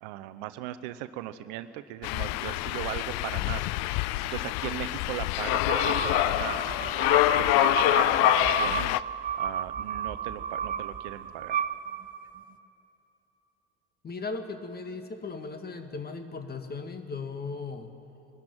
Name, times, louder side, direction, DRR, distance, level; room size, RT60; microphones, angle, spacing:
voice 1, 0.0-6.8 7.1-9.0 9.4-11.6, right 13 dB, 60° right, 12 dB, 0.8 m, -38 dB
sound 1, 2.0-9.0, left 19 dB, 50° left, 0.5 m, -26 dB
sound 2, 5.7-12.4, right 8 dB, 25° right, 0.8 m, -33 dB
voice 2, 14.0-17.9, left 4 dB, 25° left, 7 dB, 1.9 m, -37 dB
22.5 x 13.0 x 9.2 m, 2.9 s
figure-of-eight pair, 60°, 36 cm